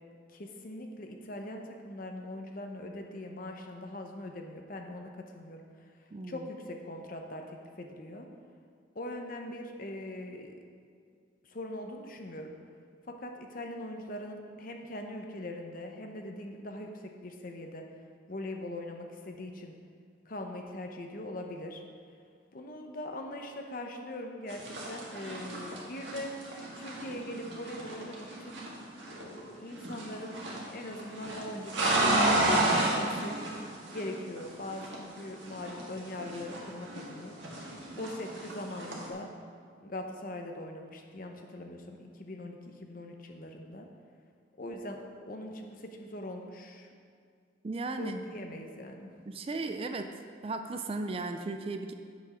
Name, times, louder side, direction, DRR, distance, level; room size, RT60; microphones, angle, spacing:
voice 1, 0.3-5.6 6.2-8.3 8.9-10.6 11.4-12.6 13.1-17.8 18.3-19.7 20.2-21.8 22.5-26.3 26.8-28.6 29.1-30.4 30.6-33.4 33.9-37.3 37.9-39.3 39.8-43.9 44.6-46.9 48.0-49.1, left 1 dB, 50° left, 3 dB, 0.8 m, -41 dB
voice 2, 6.1-6.5 47.6-48.2 49.3-50.1 50.4-51.9, right 3 dB, 30° right, 7 dB, 0.4 m, -36 dB
sound 1, 24.5-29.4 29.7-30.7 30.9-34.4 34.7-37.1 37.4-39.1, right 1 dB, 75° right, 1.8 m, -31 dB
7.4 x 6.1 x 5.6 m, 2.2 s
head